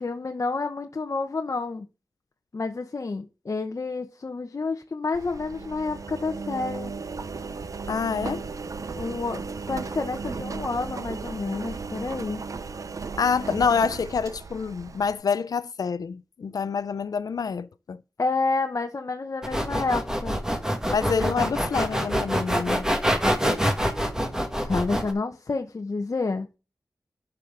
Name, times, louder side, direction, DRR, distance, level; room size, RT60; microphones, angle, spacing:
voice 1, 0.0-1.9 2.5-6.9 8.9-12.5 18.2-20.4 24.6-26.5, left 3 dB, 55° left, 1.0 m, -29 dB
Engine, 5.1-15.1, right 4 dB, 65° right, 0.7 m, -35 dB
voice 2, 7.9-8.4 13.2-18.0 20.9-22.9, left 6 dB, 85° left, 0.6 m, -27 dB
sound 1, 19.4-25.1, equal, 10° right, 1.9 m, -25 dB
11.5 x 5.9 x 3.9 m
wide cardioid pair, 80°, 6 cm